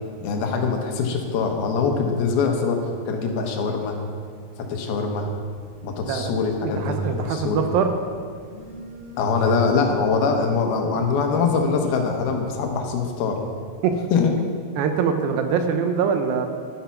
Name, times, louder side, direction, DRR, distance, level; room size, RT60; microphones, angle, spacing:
voice 1, 0.2-2.8 3.1-4.0 4.6-5.3 5.8-7.6 9.2-13.4 14.1-14.3, left 5 dB, 80° left, 3 dB, 3.0 m, -23 dB
Telephone, 5.2-13.3, right 3 dB, 15° left, 2.3 m, -43 dB
voice 2, 6.6-7.9 13.8-14.0 14.8-16.5, right 6 dB, 80° right, 6 dB, 2.5 m, -23 dB
12.0 x 8.8 x 5.9 m, 2.2 s
omnidirectional pair, 4.5 m